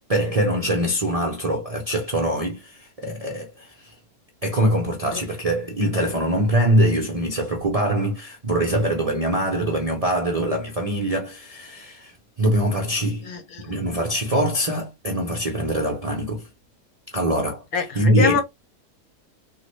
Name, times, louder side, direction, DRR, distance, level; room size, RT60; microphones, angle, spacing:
voice 1, 0.1-3.9 4.4-13.3 13.6-16.5 17.1-17.6 18.0-18.4, right 1 dB, 70° right, 0.3 m, -23 dB
voice 2, 13.2-13.7 17.7-18.4, left 6 dB, 70° left, 1.2 m, -25 dB
3.7 x 2.1 x 3.0 m
omnidirectional pair, 1.7 m